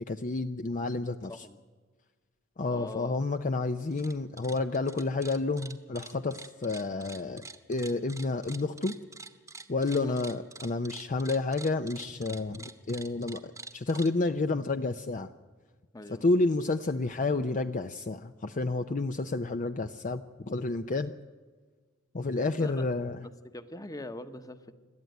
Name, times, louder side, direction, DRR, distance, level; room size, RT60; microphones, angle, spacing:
voice 1, 0.1-1.5 2.6-9.0 9.7-15.3 16.2-21.1 22.1-23.2, left 3 dB, 40° left, 8 dB, 0.6 m, -30 dB
voice 2, 2.7-3.3 9.9-10.2 15.9-16.2 22.6-22.8 23.2-24.7, left 1 dB, 15° left, 10 dB, 1.1 m, -42 dB
sound 1, 3.8-4.1 4.4-14.1, right 3 dB, 15° right, 1.1 m, -46 dB
27.0 x 12.5 x 9.2 m, 1.5 s
head